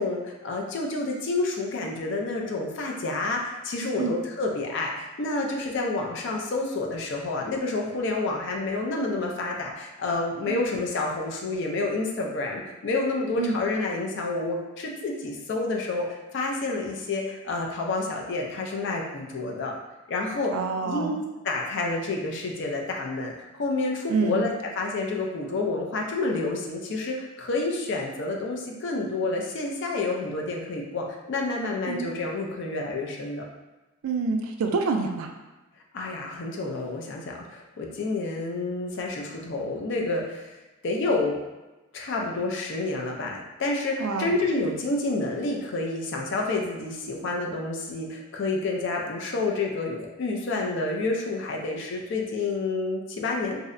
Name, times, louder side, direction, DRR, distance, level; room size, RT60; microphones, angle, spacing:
voice 1, 0.0-16.1 16.3-19.7 20.1-20.5 20.8-21.2 21.4-33.4 35.9-40.5 40.8-41.4 41.9-53.6, left 3 dB, 55° left, 0 dB, 0.4 m, -29 dB
voice 2, 20.5-21.2 24.1-24.5 31.9-32.1 34.0-35.3 44.0-44.3, right 4 dB, 75° right, 3 dB, 0.3 m, -27 dB
2.6 x 2.0 x 2.5 m, 1.1 s
head